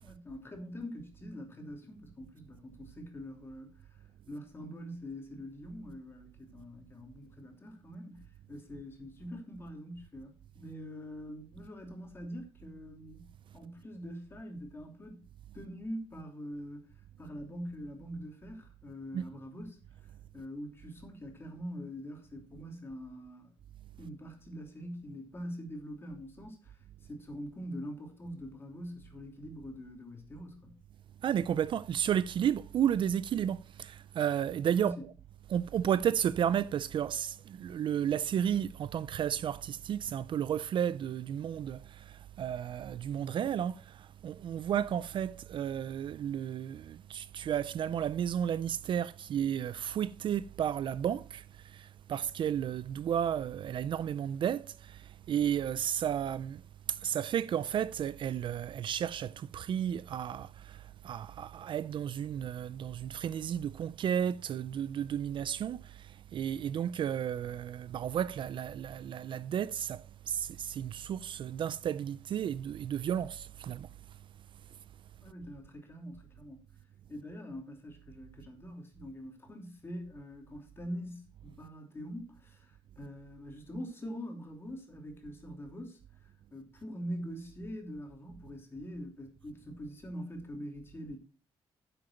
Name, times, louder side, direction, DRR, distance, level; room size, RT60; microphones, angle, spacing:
voice 1, 0.0-13.3 13.5-15.3 15.5-23.5 24.0-30.8 34.8-35.1 75.2-76.6 77.1-91.2, equal, 25° left, 3.0 m, -44 dB
voice 2, 31.2-35.0 35.5-56.6 56.9-73.9, right 9 dB, 55° right, 0.4 m, -33 dB
10.0 x 7.9 x 4.3 m
cardioid pair, 135°, 10 cm